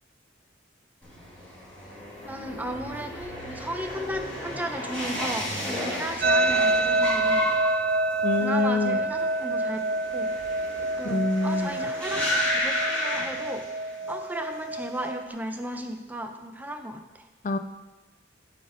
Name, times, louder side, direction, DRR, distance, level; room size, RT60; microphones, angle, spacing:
sound 1, 1.0-14.1 14.4-15.0, left 1 dB, 5° left, 2.4 m, -33 dB
voice 1, 2.2-7.5 8.4-9.8 10.1-10.3 11.0-13.6 14.1-17.3, right 1 dB, 10° right, 5 dB, 0.6 m, -35 dB
sound 2, 6.2-15.3, right 2 dB, 50° right, 0.5 m, -27 dB
voice 2, 8.2-9.0 11.0-11.8 17.4-17.6, left 3 dB, 40° left, 9 dB, 0.3 m, -26 dB
11.0 x 4.3 x 5.1 m, 1.1 s
head